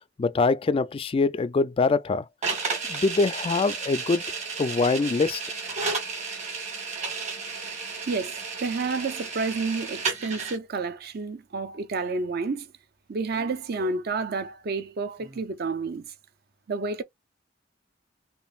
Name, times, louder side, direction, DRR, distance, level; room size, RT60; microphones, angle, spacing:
voice 1, 0.2-2.2 2.9-4.2 4.6-5.4, left 3 dB, 30° left, 0.3 m, -24 dB
sound 1, 2.4-10.6, right 4 dB, 40° right, 1.6 m, -32 dB
voice 2, 8.1-12.7 13.1-16.1 16.7-17.0, right 4 dB, 55° right, 0.5 m, -30 dB
Speech, 13.3-13.9 15.2-15.4, right 1 dB, 20° right, 0.7 m, -49 dB
5.2 x 2.5 x 2.4 m
head